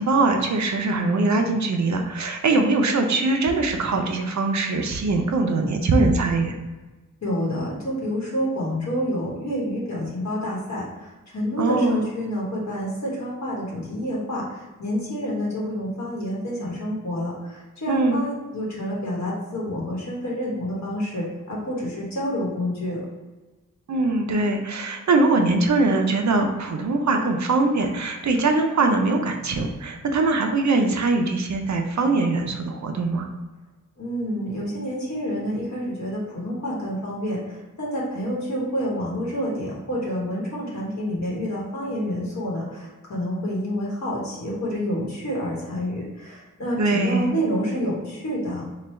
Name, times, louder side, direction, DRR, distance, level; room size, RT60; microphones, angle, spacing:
voice 1, 0.0-6.5 11.6-12.1 17.9-18.2 23.9-33.3 46.8-47.3, right 3 dB, 60° right, 4 dB, 0.5 m, -22 dB
voice 2, 7.2-23.0 34.0-48.6, equal, 55° left, -4 dB, 1.1 m, -28 dB
3.2 x 2.2 x 4.2 m, 1.2 s
wide cardioid pair, 100°, 33 cm